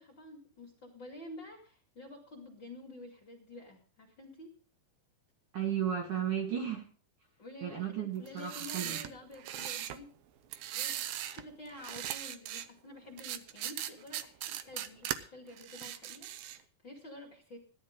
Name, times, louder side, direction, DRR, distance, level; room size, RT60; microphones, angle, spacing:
voice 1, 0.0-4.5 7.4-10.1 10.7-17.6, left 2 dB, 35° left, 0 dB, 2.3 m, -49 dB
voice 2, 5.5-6.8 7.6-9.0, right 9 dB, 55° right, 2 dB, 2.7 m, -34 dB
sound 1, 8.3-10.0 10.5-11.4 11.7-12.7 13.2-15.2 15.6-16.6, right 11 dB, 80° right, 2.2 m, -39 dB
16.5 x 12.0 x 3.7 m, 0.42 s
omnidirectional pair, 5.1 m